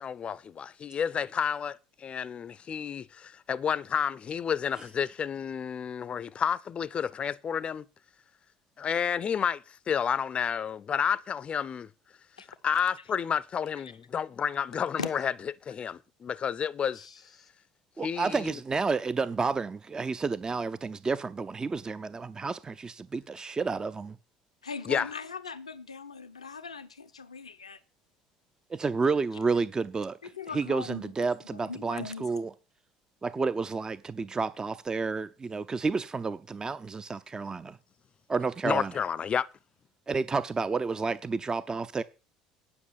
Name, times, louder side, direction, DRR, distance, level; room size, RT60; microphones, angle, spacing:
voice 1, 0.0-7.9 8.8-11.9 12.6-15.3 15.7-17.0 18.0-18.5 24.9-25.1 38.6-39.5, left 7 dB, 35° left, 0.6 m, -30 dB
voice 2, 16.9-17.5 24.6-27.8 30.3-32.3, left 5 dB, 85° left, 0.8 m, -40 dB
voice 3, 18.0-24.2 28.7-30.2 30.5-32.5 33.2-37.8 38.3-39.0 40.1-42.0, right 4 dB, 20° right, 0.6 m, -30 dB
9.8 x 6.1 x 7.2 m
figure-of-eight pair, 60°, 3 cm